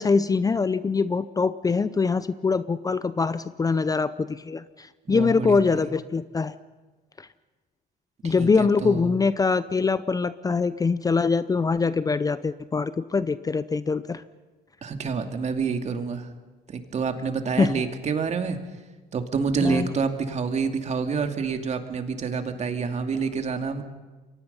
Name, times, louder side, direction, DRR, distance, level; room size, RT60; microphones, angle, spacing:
voice 1, 0.0-6.5 7.2-7.3 8.2-14.2 17.6-17.7 19.6-19.9, left 4 dB, 20° left, 15 dB, 0.6 m, -23 dB
voice 2, 5.1-5.9 8.2-9.2 14.8-16.3 16.7-18.6 19.1-23.8, right 5 dB, 40° right, 6 dB, 2.5 m, -28 dB
28.5 x 23.0 x 5.6 m, 1.3 s
cardioid pair, 110°, 17 cm